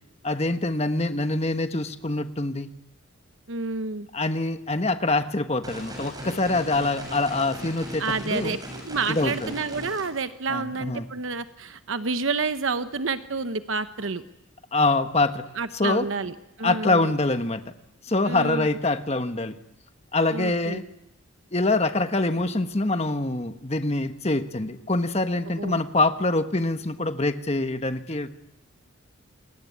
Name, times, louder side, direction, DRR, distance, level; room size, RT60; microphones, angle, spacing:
voice 1, 0.2-2.7 4.1-8.6 9.1-9.5 10.5-11.1 14.7-15.4 15.7-16.1 16.6-17.6 18.0-19.5 20.1-20.8 21.5-28.3, left 2 dB, 30° left, 9 dB, 1.3 m, -25 dB
voice 2, 3.5-4.1 8.0-8.6 8.8-14.2 15.6-17.1 18.3-18.8 20.3-20.8 25.6-25.8, right 4 dB, 70° right, 10 dB, 1.0 m, -29 dB
sound 1, 5.6-10.0, equal, 20° right, 7.1 m, -38 dB
28.5 x 21.5 x 9.6 m, 0.85 s
head